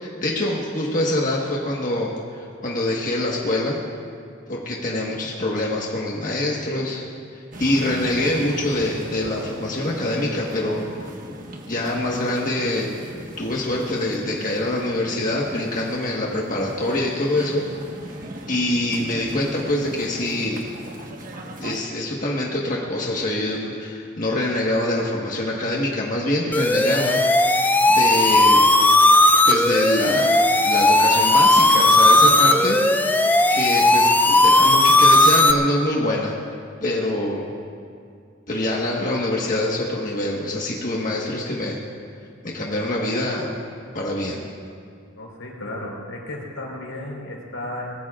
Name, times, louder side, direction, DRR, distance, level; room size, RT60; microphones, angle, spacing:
voice 1, 0.0-3.8 4.5-7.0 7.3-10.8 11.7-12.9 13.4-17.6 18.5-20.6 21.6-27.2 27.9-28.7 29.4-32.8 33.5-36.3 36.8-37.4 38.5-41.8 42.4-43.5 43.9-44.5, left 1 dB, 40° left, -3 dB, 1.5 m, -25 dB
sound 1, 7.5-21.8, right 1 dB, 40° right, 1.4 m, -38 dB
sound 2, 26.5-35.5, left 2 dB, 10° left, 0.5 m, -16 dB
voice 2, 45.2-47.9, left 1 dB, 85° left, -1 dB, 4.4 m, -34 dB
24.0 x 20.0 x 2.5 m, 2.3 s
head